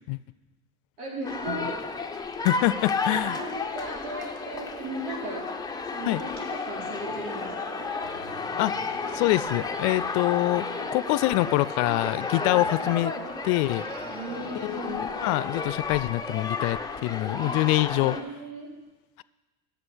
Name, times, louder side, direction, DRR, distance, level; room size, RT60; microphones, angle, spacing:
voice 1, 1.0-1.8 3.2-5.4 5.9-7.9 13.1-13.2 14.1-15.0 17.4-17.6 18.0-18.7, right 2 dB, 90° right, -3 dB, 4.1 m, -37 dB
sound 1, 1.2-18.2, left 4 dB, 10° left, 0.6 m, -32 dB
voice 2, 2.4-3.4 6.1-6.2 8.6-8.9 9.1-10.6 10.9-13.1 13.4-13.8 14.6-18.2, left 19 dB, 65° left, 19 dB, 0.5 m, -25 dB
sound 2, 6.7-15.8, right 5 dB, 70° right, 1.6 m, -44 dB
11.0 x 7.2 x 6.2 m, 1.1 s
supercardioid pair, 115°, 43 cm